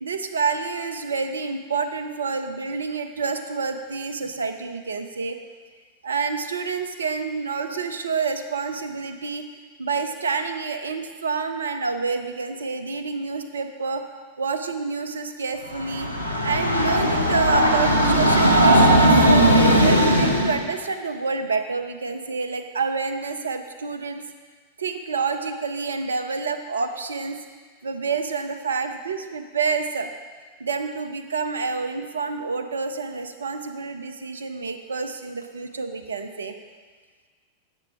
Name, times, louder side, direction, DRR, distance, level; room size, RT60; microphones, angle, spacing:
voice 1, 0.0-5.4 6.0-9.5 9.8-14.0 14.4-16.1 16.4-19.5 19.8-24.2 24.8-27.4 27.8-30.1 30.6-36.5, right 5 dB, 70° right, 8 dB, 0.4 m, -28 dB
Train, 15.7-20.6, equal, 90° left, 0.6 m, -18 dB
7.4 x 7.0 x 3.0 m, 1.5 s
figure-of-eight pair, 90°, 0 cm